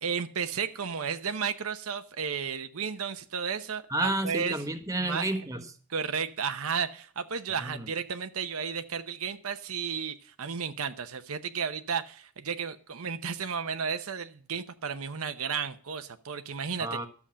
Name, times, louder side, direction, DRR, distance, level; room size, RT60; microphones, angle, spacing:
voice 1, 0.0-4.6 5.0-5.2 5.9-17.0, right 6 dB, 75° right, 9 dB, 0.8 m, -33 dB
voice 2, 3.9-5.6 7.6-7.9 16.8-17.1, right 2 dB, 15° right, 7 dB, 1.3 m, -31 dB
12.5 x 7.2 x 7.4 m, 0.43 s
head